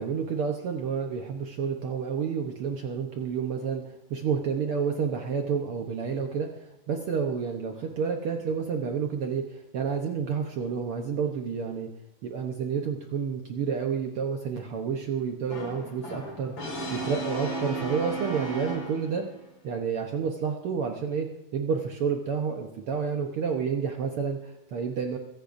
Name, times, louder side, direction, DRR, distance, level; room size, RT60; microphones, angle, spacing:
voice 1, 0.0-11.9 12.2-19.3 19.6-25.2, right 6 dB, 80° right, 3 dB, 1.2 m, -30 dB
Brass instrument, 15.5-19.3, right 2 dB, 70° left, 6.1 m, -34 dB
22.5 x 15.5 x 2.6 m, 0.87 s
omnidirectional pair, 3.9 m